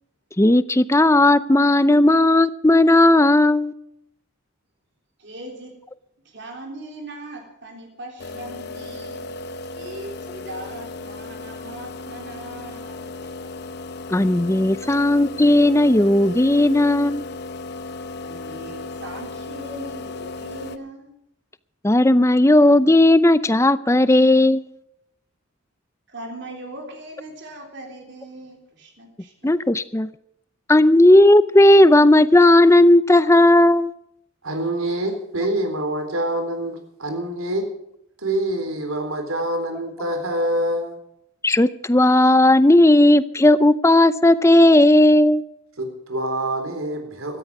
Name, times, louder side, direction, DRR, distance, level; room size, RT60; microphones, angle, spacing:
voice 1, 0.4-3.7 14.1-17.3 21.8-24.7 29.4-30.1 30.7-33.9 41.4-45.4, left 1 dB, 15° left, 0.6 m, -15 dB
voice 2, 5.2-5.8 6.2-9.3 9.7-13.5 14.8-14.9 18.2-21.1 26.1-29.5, right 1 dB, 55° right, 3.5 m, -39 dB
sound 1, 8.2-20.8, left 3 dB, 50° left, 0.9 m, -35 dB
voice 3, 34.4-37.7 38.2-41.0 45.8-47.4, right 1 dB, 85° right, 3.8 m, -26 dB
17.0 x 14.0 x 4.8 m
head